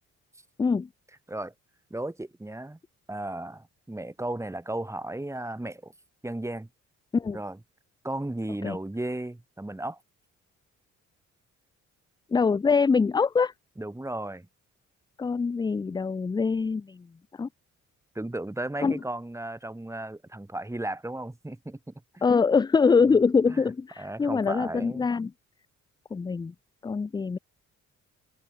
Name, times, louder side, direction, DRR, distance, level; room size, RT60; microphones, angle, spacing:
voice 1, 0.6-0.9 7.1-7.4 8.6-8.8 12.3-13.5 15.2-17.1 17.4-17.5 18.8-19.0 22.2-25.3 26.1-26.5 26.8-27.4, left 5 dB, 15° left, 0.3 m, -24 dB
voice 2, 1.9-2.8 3.1-5.9 6.2-6.7 7.3-7.6 8.0-10.0 13.8-14.5 18.2-22.3 23.5-23.6 24.0-25.1, right 1 dB, 10° right, 3.8 m, -35 dB
cardioid pair, 90°, 30 cm